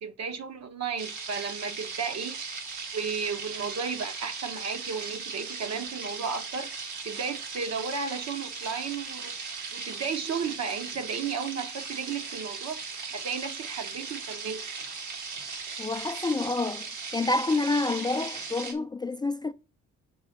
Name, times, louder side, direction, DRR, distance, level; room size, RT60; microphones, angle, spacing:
voice 1, 0.0-2.4 2.9-6.7 7.0-14.8, right 5 dB, 60° right, 1.1 m, -34 dB
sound 1, 1.0-18.7, right 5 dB, 75° right, 1.9 m, -38 dB
voice 2, 15.8-16.9 17.1-19.5, left 3 dB, 15° left, 0.3 m, -28 dB
6.7 x 3.5 x 5.8 m
cardioid pair, 90°, 30 cm